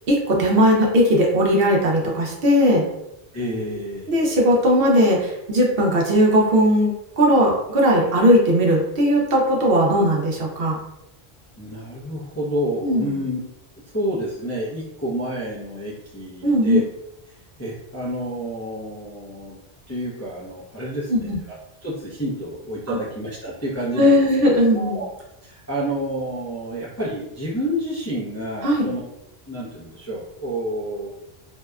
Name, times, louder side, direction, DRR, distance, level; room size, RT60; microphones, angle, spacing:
voice 1, 0.1-2.8 4.1-10.8 12.8-13.2 16.4-16.8 21.1-21.4 22.9-23.0 24.0-25.0 28.6-28.9, equal, 70° right, -2 dB, 0.8 m, -18 dB
voice 2, 3.3-4.4 11.6-13.4 13.9-16.8 17.6-19.6 19.9-21.6 21.8-24.3 24.7-25.1 25.4-29.0 29.5-31.1, equal, 25° left, -8 dB, 0.4 m, -29 dB
2.7 x 2.1 x 2.3 m, 0.86 s
omnidirectional pair, 1.1 m